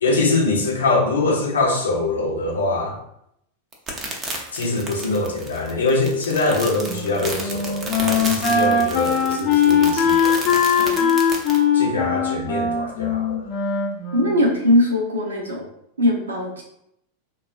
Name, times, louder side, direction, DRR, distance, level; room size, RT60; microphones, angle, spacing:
voice 1, 0.0-3.0 4.5-10.4 11.7-13.5, left 2 dB, 70° left, 0 dB, 0.7 m, -23 dB
sound 1, 3.7-11.6, right 2 dB, 25° right, 0.6 m, -32 dB
Wind instrument woodwind instrument, 6.8-14.6, left 6 dB, 35° left, 0.6 m, -20 dB
voice 2, 10.8-11.1 14.1-15.7 16.0-16.6, left 1 dB, 70° right, 1 dB, 0.7 m, -20 dB
3.7 x 2.3 x 2.4 m, 0.76 s
figure-of-eight pair, 90°, 0 cm